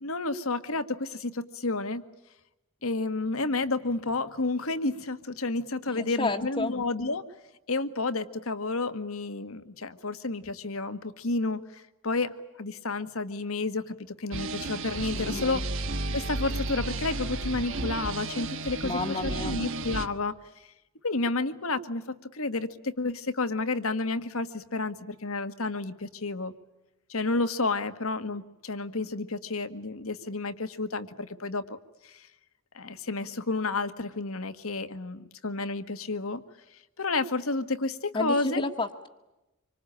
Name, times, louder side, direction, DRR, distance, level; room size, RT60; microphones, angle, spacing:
voice 1, 0.0-2.0 2.8-7.2 7.7-15.6 16.1-20.3 21.0-26.5 27.1-32.3 32.7-36.4 37.0-38.6, left 3 dB, 75° left, 11 dB, 1.6 m, -31 dB
voice 2, 5.9-6.7 15.1-15.6 18.8-19.6 38.1-39.1, left 3 dB, 25° left, 1 dB, 1.4 m, -31 dB
sound 1, 14.3-20.1, right 2 dB, 60° right, 1.5 m, -33 dB
26.5 x 25.0 x 8.9 m, 0.99 s
head